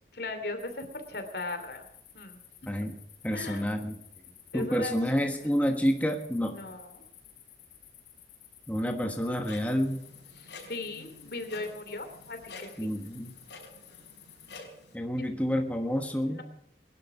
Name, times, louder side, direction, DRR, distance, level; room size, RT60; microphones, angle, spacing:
voice 1, 0.1-1.8 2.1-2.4 3.3-3.7 4.5-4.9 6.5-7.0 10.3-12.9 15.2-15.3 16.3-16.4, left 2 dB, 65° left, 7 dB, 2.9 m, -38 dB
sound 1, 0.6-14.6, left 10 dB, 45° left, 4.1 m, -55 dB
voice 2, 2.6-3.0 3.2-4.0 4.5-6.6 8.7-10.0 12.8-13.3 14.9-16.4, equal, 10° left, 3 dB, 1.3 m, -29 dB
Clock, 9.4-15.0, left 3 dB, 85° left, 4.8 m, -50 dB
22.0 x 11.5 x 4.9 m, 0.77 s
head